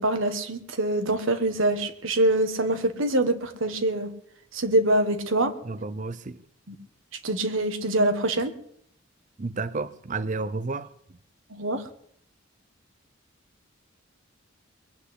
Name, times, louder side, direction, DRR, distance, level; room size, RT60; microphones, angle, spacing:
voice 1, 0.0-4.1 4.5-5.5 7.2-8.5 11.5-11.8, right 1 dB, 75° right, 1.5 m, -24 dB
voice 2, 5.6-6.4 9.4-10.9, right 3 dB, 40° right, 0.6 m, -31 dB
21.0 x 8.3 x 8.2 m
head